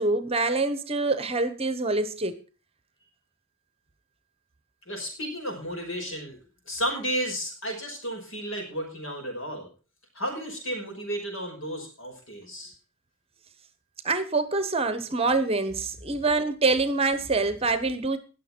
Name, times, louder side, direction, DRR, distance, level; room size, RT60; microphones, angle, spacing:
voice 1, 0.0-2.4 14.0-18.2, right 3 dB, 30° right, 12 dB, 1.0 m, -25 dB
voice 2, 4.9-6.4 6.7-9.7 10.1-12.7, equal, 65° left, 2 dB, 5.3 m, -33 dB
19.5 x 6.7 x 4.5 m, 0.35 s
head